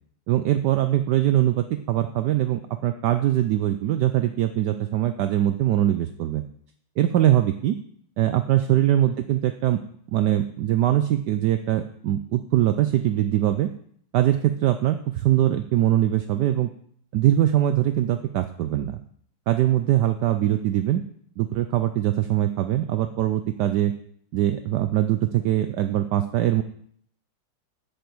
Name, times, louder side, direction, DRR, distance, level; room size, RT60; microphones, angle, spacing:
voice 1, 0.3-6.4 7.0-7.8 8.2-9.8 10.1-13.7 14.1-16.7 17.1-19.0 19.5-21.0 21.4-23.9 24.3-26.6, right 12 dB, 80° right, 9 dB, 0.9 m, -22 dB
8.0 x 6.6 x 7.7 m, 0.63 s
omnidirectional pair, 2.4 m